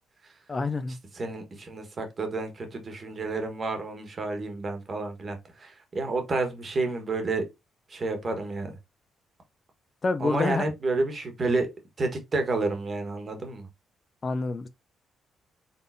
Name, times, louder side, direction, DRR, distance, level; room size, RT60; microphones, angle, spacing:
voice 1, 0.5-1.0 10.0-10.6 14.2-14.7, left 3 dB, 35° left, 0.5 m, -27 dB
voice 2, 1.1-7.5 7.9-8.8 10.2-11.7 12.0-13.7, right 3 dB, 40° right, 1.4 m, -30 dB
4.2 x 3.6 x 2.6 m
cardioid pair, 90°, 0 cm